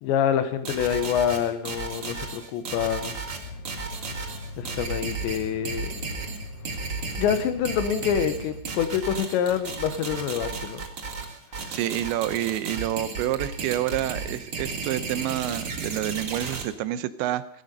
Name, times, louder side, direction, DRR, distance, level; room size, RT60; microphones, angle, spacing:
voice 1, 0.0-3.2 4.6-6.0 7.2-10.8, left 8 dB, 90° left, 10 dB, 3.5 m, -26 dB
sound 1, 0.6-16.6, right 4 dB, 40° right, 2.2 m, -34 dB
sound 2, 3.4-8.6, left 2 dB, 70° left, 3.4 m, -40 dB
voice 2, 11.7-17.6, right 13 dB, 90° right, 14 dB, 3.2 m, -28 dB
16.5 x 16.0 x 5.4 m, 0.66 s
omnidirectional pair, 5.0 m